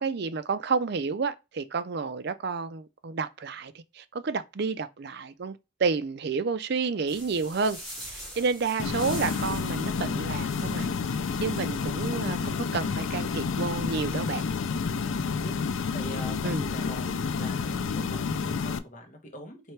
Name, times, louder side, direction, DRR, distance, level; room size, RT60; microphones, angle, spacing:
voice 1, 0.0-7.8 8.1-10.9 11.4-14.4 16.4-16.6, right 4 dB, 50° right, 0.4 m, -30 dB
sound 1, 7.1-12.7, equal, ahead, 2.4 m, -44 dB
sound 2, 8.8-18.8, left 5 dB, 70° left, 0.4 m, -30 dB
voice 2, 15.0-15.5 15.9-19.7, equal, 35° left, 1.2 m, -44 dB
4.5 x 3.2 x 3.2 m
head